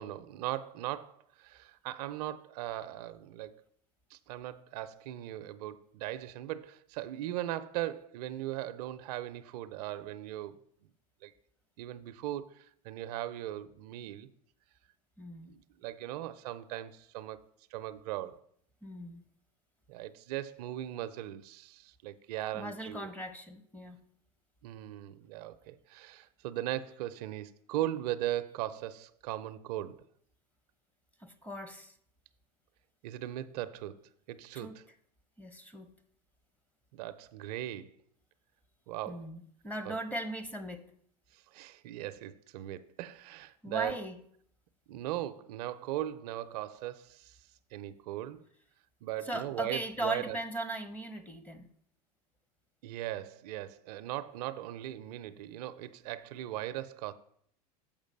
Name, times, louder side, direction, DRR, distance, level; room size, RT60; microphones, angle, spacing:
voice 1, 0.0-3.6 4.1-10.6 11.2-11.3 11.8-14.3 15.5-17.4 17.7-18.4 19.9-23.1 24.6-30.0 33.0-34.0 34.3-34.8 36.9-37.9 38.9-39.3 39.9-40.0 41.3-43.9 44.9-47.4 47.7-48.4 49.0-50.4 52.8-57.1, right 13 dB, 70° right, 0.5 m, -38 dB
voice 2, 15.2-15.5 18.8-19.2 22.5-24.0 31.2-31.9 34.5-34.8 35.4-35.9 39.1-40.9 43.6-44.2 49.2-51.7, right 1 dB, 5° left, 0.7 m, -38 dB
7.3 x 5.1 x 5.2 m
hypercardioid pair, 105°, 21 cm